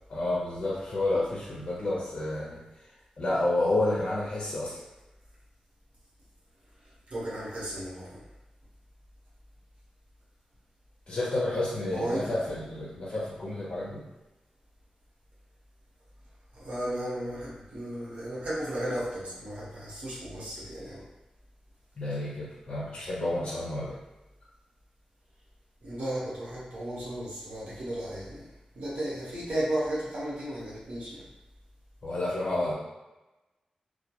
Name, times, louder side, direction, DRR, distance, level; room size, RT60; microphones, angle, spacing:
voice 1, 0.1-2.6 3.2-4.8 11.1-14.0 22.0-24.0 32.0-32.7, left 2 dB, 45° left, -7 dB, 0.7 m, -30 dB
voice 2, 7.1-8.2 11.9-12.3 16.5-21.0 25.8-28.5 28.7-31.2, right 1 dB, 65° right, -8 dB, 1.0 m, -34 dB
2.2 x 2.2 x 2.9 m, 1.0 s
wide cardioid pair, 95°, 2 cm